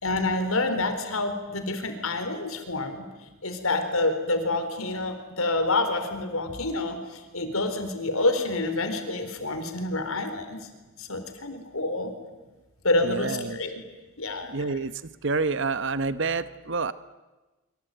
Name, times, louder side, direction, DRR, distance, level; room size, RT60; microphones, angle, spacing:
voice 1, 0.0-3.0 3.4-10.7 11.0-12.1 12.8-13.8 14.2-14.5, left 2 dB, 75° left, 7 dB, 4.2 m, -28 dB
voice 2, 13.0-13.6 14.5-14.9 15.2-16.9, right 4 dB, 55° right, 14 dB, 1.0 m, -28 dB
25.5 x 25.5 x 9.2 m, 1.2 s
head